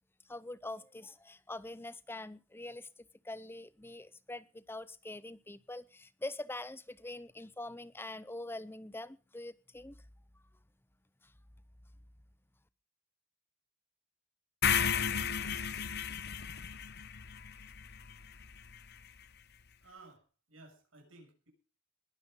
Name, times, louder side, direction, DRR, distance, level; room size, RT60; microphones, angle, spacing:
voice 1, 0.3-10.0 11.2-11.3, left 2 dB, 10° left, 17 dB, 0.7 m, -44 dB
sound 1, 14.6-18.8, left 7 dB, 55° left, 0.9 m, -34 dB
voice 2, 19.8-21.5, right 3 dB, 85° right, 1 dB, 6.9 m, -56 dB
21.0 x 9.3 x 5.4 m, 0.36 s
head